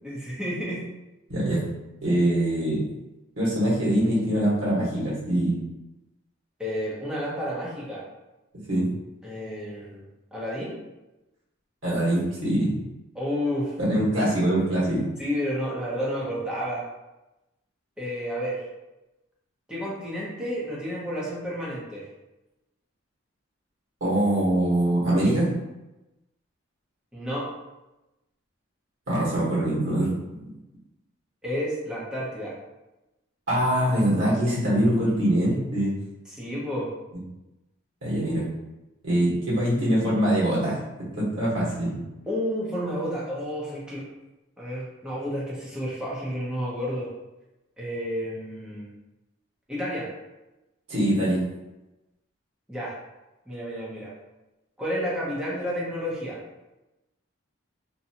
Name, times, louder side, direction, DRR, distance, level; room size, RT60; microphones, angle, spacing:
voice 1, 0.0-0.8 6.6-8.1 9.2-10.0 10.3-10.8 13.1-13.7 15.2-16.8 18.0-18.6 19.7-22.1 27.1-27.5 31.4-32.6 36.3-36.9 42.3-44.1 44.6-47.1 47.8-48.9 49.7-50.1 52.7-52.9 53.5-54.1 54.8-56.4, equal, 5° right, -7 dB, 0.6 m, -31 dB
voice 2, 1.3-1.6 2.0-2.8 3.4-5.6 8.7-8.9 11.8-12.7 13.8-15.1 24.0-25.5 29.1-30.4 33.5-35.9 38.0-38.5 39.0-40.8 41.1-41.9 50.9-51.4, right 1 dB, 80° right, -8 dB, 1.1 m, -23 dB
2.6 x 2.2 x 2.7 m, 0.99 s
head